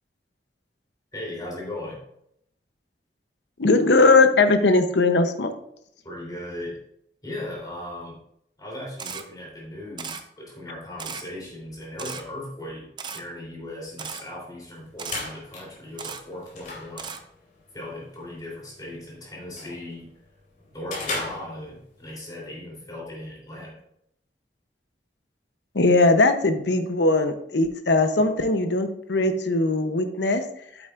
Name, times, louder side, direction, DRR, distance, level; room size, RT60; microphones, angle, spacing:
voice 1, 1.1-2.0 6.0-6.8 7.2-8.2 8.6-17.2 17.7-20.1 20.7-23.8, left 1 dB, 20° left, -3 dB, 3.4 m, -37 dB
voice 2, 3.6-5.5 25.7-30.4, left 3 dB, 80° left, 8 dB, 0.8 m, -20 dB
Camera, 9.0-9.2 10.0-10.2 11.0-11.2 12.0-12.2 13.0-13.2 14.0-14.2 15.0-15.2 16.0-16.2 17.0-17.2, right 6 dB, 25° right, 0.5 m, -35 dB
sound 1, 14.7-22.1, left 3 dB, 45° left, 3.0 m, -39 dB
8.9 x 8.0 x 2.5 m, 0.74 s
head